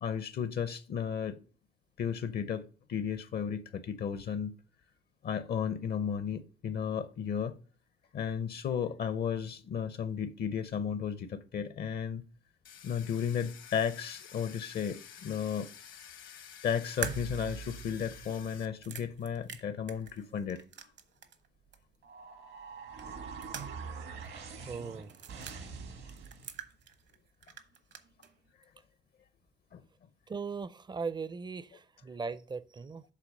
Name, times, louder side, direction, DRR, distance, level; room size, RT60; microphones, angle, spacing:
voice 1, 0.0-1.4 2.0-4.5 5.2-7.6 8.1-12.2 12.8-15.7 16.6-20.6 26.0-26.1 29.7-29.8, left 7 dB, 55° left, 0.6 m, -34 dB
Domestic sounds home sounds, 12.6-18.7, left 8 dB, 75° left, 1.1 m, -51 dB
sound 1, 17.0-21.5 21.7-21.8 23.0-24.0 24.2-24.3 25.0-25.6 26.1-27.2 27.4-28.3, right 8 dB, 65° right, 1.0 m, -43 dB
sound 2, 22.0-26.6, right 5 dB, 80° right, 1.9 m, -44 dB
voice 2, 24.7-25.1 30.3-33.0, right 4 dB, 20° right, 0.5 m, -38 dB
7.4 x 4.1 x 5.3 m
cardioid pair, 90°, 20 cm